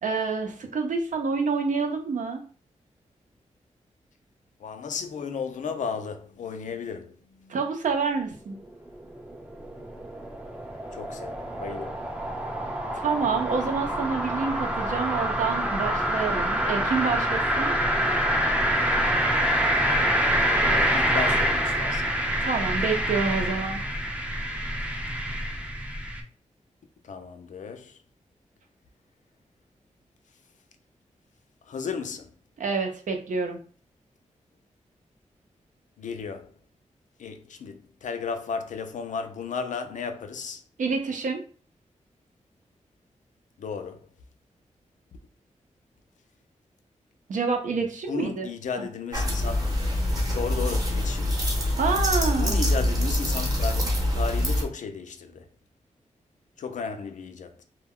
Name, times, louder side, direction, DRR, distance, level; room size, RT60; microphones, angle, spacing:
voice 1, 0.0-2.4 7.5-8.6 13.0-17.7 22.4-23.8 32.6-33.6 40.8-41.4 47.3-48.5 48.8-48.9 51.8-52.6, right 5 dB, 75° right, 0.6 m, -27 dB
voice 2, 4.6-7.6 10.9-12.0 20.5-22.1 27.0-28.0 31.6-32.3 36.0-36.5 37.2-40.6 43.6-44.1 47.7-47.8 48.1-49.7 50.3-51.4 52.4-55.5 56.6-57.6, left 5 dB, 75° left, 0.4 m, -34 dB
sound 1, 8.6-26.2, equal, 10° right, 0.4 m, -26 dB
sound 2, 49.1-54.6, left 1 dB, 30° right, 0.8 m, -25 dB
2.2 x 2.1 x 3.5 m
wide cardioid pair, 80°, 13 cm